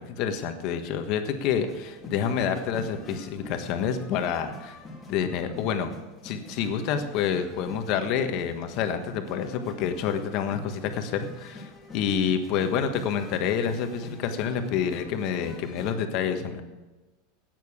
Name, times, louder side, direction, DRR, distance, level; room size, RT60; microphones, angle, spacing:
voice 1, 0.0-4.8 5.1-5.9 6.2-16.6, left 7 dB, 45° left, 7 dB, 1.4 m, -28 dB
sound 1, 0.8-16.0, left 2 dB, 15° left, 2.2 m, -45 dB
13.0 x 9.2 x 7.2 m, 1.1 s
supercardioid pair, 160°, 0 cm